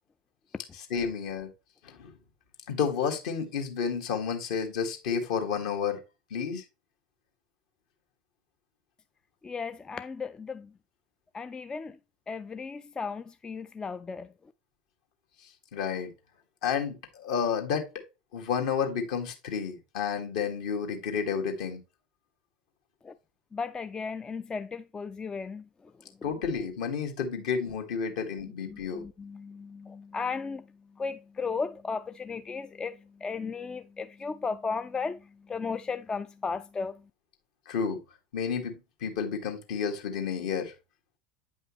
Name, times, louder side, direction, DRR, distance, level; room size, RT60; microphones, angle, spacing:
voice 1, 0.8-1.5 1.8-2.1 2.7-6.0 6.3-6.6 15.7-16.1 16.6-17.9 18.3-21.8 26.2-29.0 37.7-38.0 38.3-40.7, left 6 dB, 60° left, 1.6 m, -31 dB
voice 2, 9.4-10.7 11.3-12.0 12.3-14.3 23.0-23.1 23.5-25.6 28.7-30.7 31.0-37.0, left 5 dB, 15° left, 0.4 m, -35 dB
8.8 x 5.4 x 3.1 m
figure-of-eight pair, 75°, 4 cm